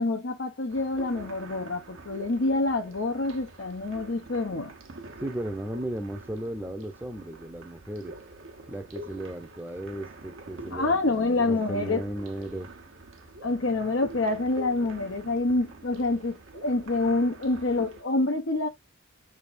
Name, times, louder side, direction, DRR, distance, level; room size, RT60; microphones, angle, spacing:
voice 1, 0.0-4.7 10.7-12.0 13.4-18.7, left 2 dB, 65° left, 0.8 m, -27 dB
sound 1, 0.7-18.0, right 2 dB, 70° right, 1.0 m, -46 dB
voice 2, 5.2-8.1 8.7-12.7, right 1 dB, 10° right, 0.7 m, -35 dB
5.8 x 3.5 x 2.6 m
head